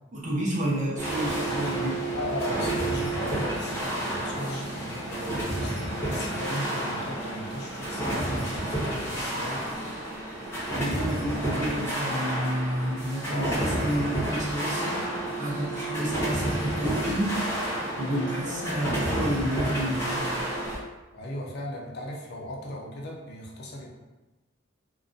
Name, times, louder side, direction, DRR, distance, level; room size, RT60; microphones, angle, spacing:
voice 1, 0.1-2.0 10.8-17.4 18.0-20.4, right 1 dB, 40° right, -5 dB, 0.6 m, -30 dB
sound 1, 1.0-20.8, right 1 dB, 15° left, 0.6 m, -30 dB
voice 2, 2.1-9.7 13.2-13.7 21.1-23.9, left 1 dB, 55° left, -1 dB, 0.5 m, -37 dB
2.4 x 2.1 x 2.5 m, 1.1 s
head